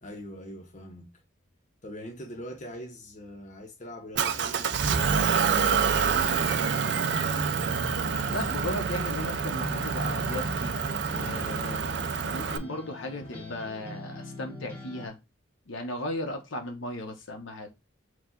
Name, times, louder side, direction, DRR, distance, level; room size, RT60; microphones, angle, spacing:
voice 1, 0.0-1.1 1.8-7.4, equal, 40° left, 0.8 m, -43 dB
Motor vehicle (road) / Engine, 4.2-12.6, right 6 dB, 60° right, 0.4 m, -27 dB
sound 1, 7.6-15.1, left 1 dB, 10° left, 0.9 m, -41 dB
voice 2, 8.3-10.7 11.1-11.8 12.3-15.2 15.7-17.7, left 1 dB, 80° left, 1.0 m, -36 dB
4.7 x 2.3 x 3.8 m
head